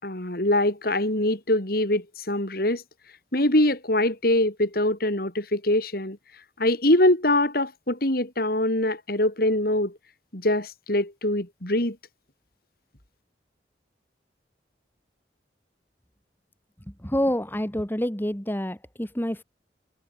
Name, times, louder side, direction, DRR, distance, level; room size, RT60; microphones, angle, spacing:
voice 1, 0.0-2.8 3.3-6.2 6.6-10.0 10.3-12.0, left 1 dB, 55° left, 4.3 m, -23 dB
voice 2, 17.0-19.4, equal, 10° left, 2.1 m, -27 dB
head